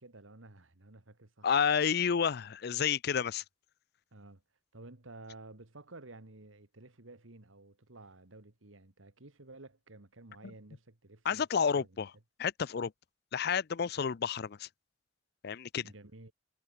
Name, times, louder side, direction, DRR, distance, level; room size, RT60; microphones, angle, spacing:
voice 1, 0.0-1.5 4.1-4.4 4.7-11.5 11.7-12.1 15.8-16.3, right 2 dB, 85° right, 2.0 m, -53 dB
voice 2, 1.4-3.4 11.2-12.1 12.4-12.9 13.3-14.7 15.4-15.8, left 7 dB, 55° left, 0.5 m, -30 dB
head